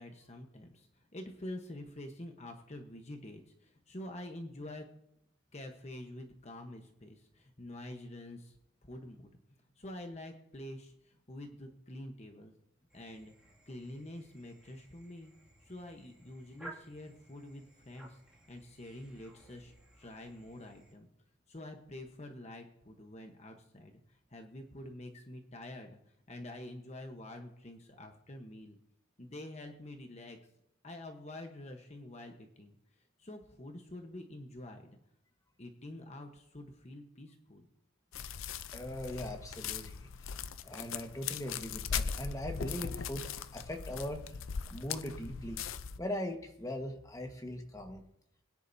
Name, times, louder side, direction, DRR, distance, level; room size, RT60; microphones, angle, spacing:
voice 1, 0.0-4.8 5.5-8.6 8.8-9.3 9.8-12.5 12.9-13.3 13.7-15.3 15.6-21.1 21.5-26.0 26.3-28.8 29.2-30.4 30.8-34.9 35.6-37.7, left 1 dB, 35° left, 4 dB, 1.1 m, -47 dB
sound 1, 12.9-20.9, right 1 dB, 5° right, 2.3 m, -57 dB
sound 2, 38.1-46.0, left 7 dB, 80° left, 0.6 m, -39 dB
voice 2, 38.7-40.3 40.6-44.4 44.7-45.6 46.0-48.0, left 1 dB, 15° left, 4 dB, 1.4 m, -40 dB
21.0 x 10.0 x 2.7 m, 0.76 s
head